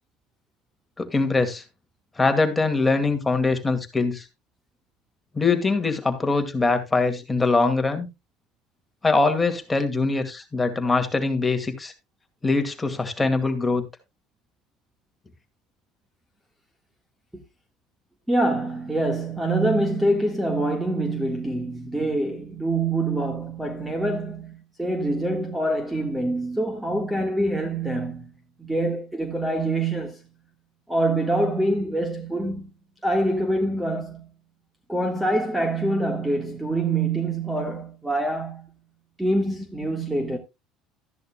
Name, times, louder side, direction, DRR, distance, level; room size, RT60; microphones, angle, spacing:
voice 1, 1.0-1.6 2.2-4.3 5.3-8.1 9.0-11.9 12.4-13.8, left 3 dB, 15° left, 2.2 m, -22 dB
voice 2, 18.3-28.3 28.6-30.2 30.9-32.7 33.0-34.3 34.9-38.7 39.2-40.4, right 1 dB, 5° right, 1.6 m, -25 dB
13.5 x 10.5 x 2.3 m
supercardioid pair, 105°, 0 cm